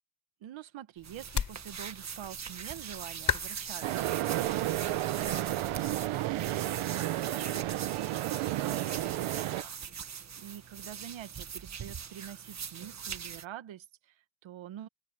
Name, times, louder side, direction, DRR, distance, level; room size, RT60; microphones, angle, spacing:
voice 1, 0.4-14.9, right 11 dB, 70° right, 1.6 m, -46 dB
sound 1, 1.0-6.6, left 5 dB, 40° left, 4.1 m, -39 dB
sound 2, 1.0-13.5, right 7 dB, 35° right, 1.5 m, -42 dB
sound 3, 3.8-9.6, right 15 dB, 85° right, 1.1 m, -32 dB
open air
cardioid pair, 135°, 49 cm